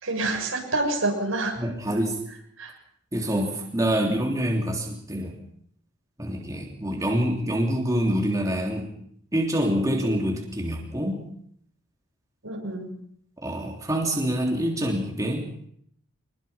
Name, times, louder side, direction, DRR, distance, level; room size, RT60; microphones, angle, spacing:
voice 1, 0.0-1.6 2.6-2.7 12.4-13.0, right 2 dB, 85° right, 2 dB, 6.7 m, -27 dB
voice 2, 1.6-2.2 3.1-5.4 6.2-8.9 9.3-11.2 13.4-15.5, equal, 15° right, 0 dB, 3.3 m, -26 dB
25.0 x 21.0 x 5.8 m, 0.67 s
head